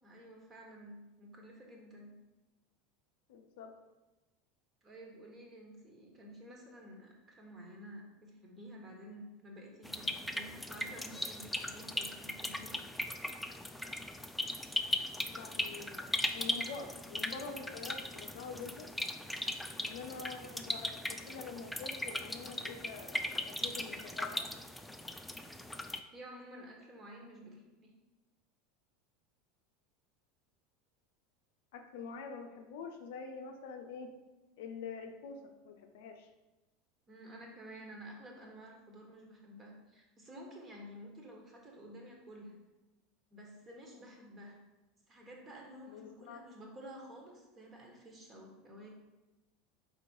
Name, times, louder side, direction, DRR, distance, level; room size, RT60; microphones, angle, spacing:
voice 1, 0.0-2.1 4.8-12.8 26.1-27.9 37.1-42.6 43.3-44.6 45.1-48.9, equal, 25° right, 0 dB, 1.5 m, -51 dB
voice 2, 3.3-3.8 15.3-18.9 19.8-24.4 31.7-34.1 34.6-36.3 45.9-46.4, left 5 dB, 60° left, 5 dB, 0.6 m, -46 dB
sound 1, 9.8-26.0, left 1 dB, 5° left, 0.4 m, -38 dB
5.1 x 4.2 x 4.6 m, 1.1 s
figure-of-eight pair, 75°, 0 cm